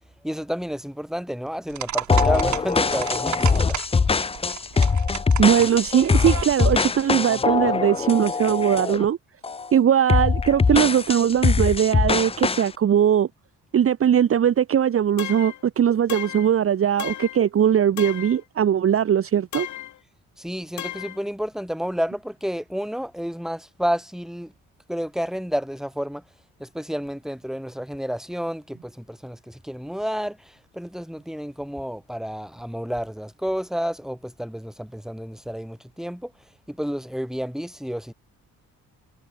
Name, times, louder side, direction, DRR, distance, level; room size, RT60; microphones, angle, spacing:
voice 1, 0.2-3.8 20.4-24.5 24.9-26.2 26.6-36.3 36.7-38.1, equal, ahead, 4.7 m, -30 dB
sound 1, 1.7-7.0, right 10 dB, 60° right, 2.2 m, -34 dB
sound 2, 2.1-9.1 9.4-9.7 10.1-12.7, left 4 dB, 20° left, 0.6 m, -22 dB
voice 2, 5.4-9.2 9.7-13.3 13.7-19.7, right 9 dB, 45° right, 1.0 m, -20 dB
sound 3, 15.2-15.6 16.1-16.5 17.0-17.4 18.0-18.4 19.5-20.0 20.8-21.2, left 13 dB, 60° left, 1.0 m, -34 dB
cardioid pair, 80°, 33 cm